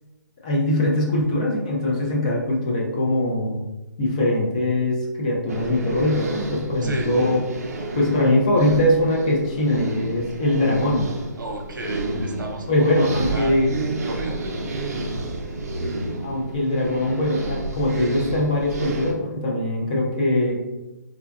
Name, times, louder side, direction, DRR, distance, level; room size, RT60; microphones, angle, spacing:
voice 1, 0.4-3.6 4.0-7.4 7.9-11.1 12.7-13.7 16.2-20.6, left 1 dB, 20° left, -2 dB, 0.4 m, -22 dB
sound 1, 5.5-19.1, right 2 dB, 50° right, 0.5 m, -30 dB
voice 2, 11.4-13.6 14.1-14.5, right 2 dB, 85° right, 2 dB, 0.7 m, -32 dB
3.6 x 2.2 x 2.3 m, 1.0 s
hypercardioid pair, 170°, 10 cm